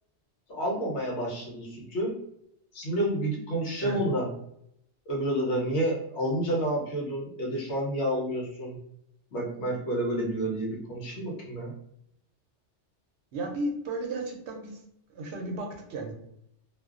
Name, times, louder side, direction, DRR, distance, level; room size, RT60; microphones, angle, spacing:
voice 1, 0.5-2.2 2.7-4.3 5.1-8.8 9.3-11.7, right 1 dB, 75° left, -2 dB, 1.1 m, -29 dB
voice 2, 13.3-14.8 15.1-16.1, right 2 dB, 70° right, 2 dB, 0.9 m, -34 dB
2.5 x 2.2 x 2.3 m, 0.74 s
omnidirectional pair, 1.2 m